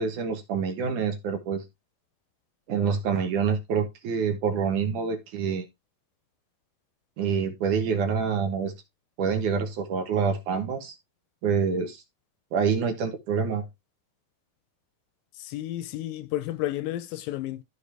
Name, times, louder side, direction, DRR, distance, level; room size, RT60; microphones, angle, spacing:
voice 1, 0.0-1.6 2.7-5.7 7.2-8.7 9.2-10.9 11.4-12.0 12.5-13.7, right 6 dB, 65° right, 2.5 m, -26 dB
voice 2, 15.4-17.6, left 14 dB, 80° left, 2.2 m, -32 dB
13.5 x 4.7 x 3.4 m
omnidirectional pair, 4.3 m